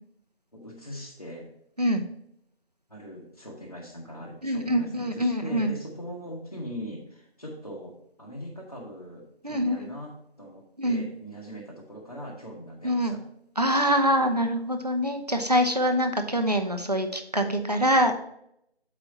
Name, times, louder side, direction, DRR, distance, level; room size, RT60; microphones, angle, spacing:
voice 1, 0.5-1.5 2.9-13.2, equal, 35° left, -4 dB, 1.1 m, -41 dB
voice 2, 4.4-5.7 9.4-9.9 10.8-11.0 12.8-13.1 13.6-18.2, equal, 40° right, 6 dB, 0.7 m, -24 dB
7.4 x 5.1 x 4.1 m, 0.74 s
figure-of-eight pair, 170°, 32 cm